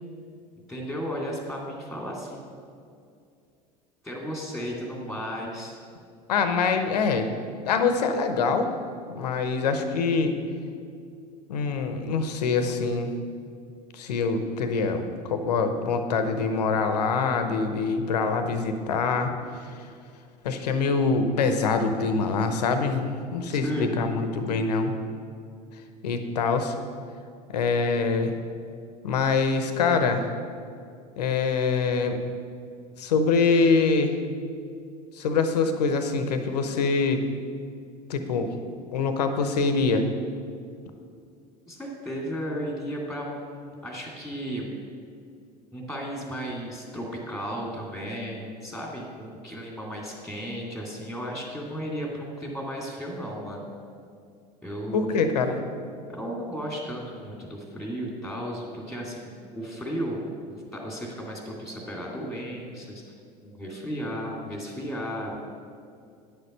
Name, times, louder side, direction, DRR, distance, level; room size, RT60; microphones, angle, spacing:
voice 1, 0.7-2.4 4.0-5.8 23.5-23.9 41.7-44.7 45.7-53.7 54.6-55.3 56.1-63.0 63.4-65.4, equal, ahead, -1 dB, 2.4 m, -34 dB
voice 2, 6.3-7.3 7.6-8.7 9.1-10.3 11.5-13.1 13.9-19.3 20.4-24.9 26.0-26.7 27.5-28.3 29.0-30.3 31.2-32.2 33.0-34.1 35.2-37.2 38.1-38.5 38.9-40.0 54.9-55.6, left 4 dB, 80° left, 8 dB, 0.9 m, -24 dB
9.8 x 6.7 x 5.5 m, 2.3 s
hypercardioid pair, 75°, 21 cm